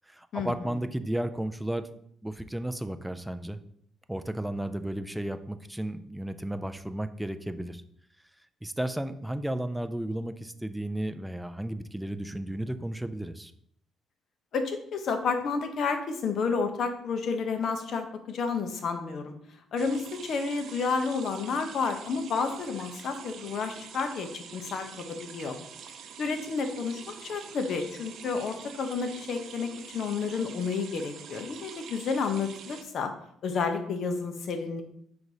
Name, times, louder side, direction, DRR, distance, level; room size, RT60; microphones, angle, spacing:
voice 1, 0.1-1.9 2.2-3.6 4.1-7.8 8.6-13.5, right 1 dB, 5° right, 10 dB, 0.3 m, -33 dB
voice 2, 14.5-19.3 19.7-25.6 26.2-33.1 33.4-34.8, left 5 dB, 50° left, 6 dB, 0.8 m, -31 dB
sound 1, 19.8-32.8, right 7 dB, 60° right, 0.6 m, -46 dB
5.1 x 4.0 x 4.8 m, 0.69 s
cardioid pair, 145°, 0 cm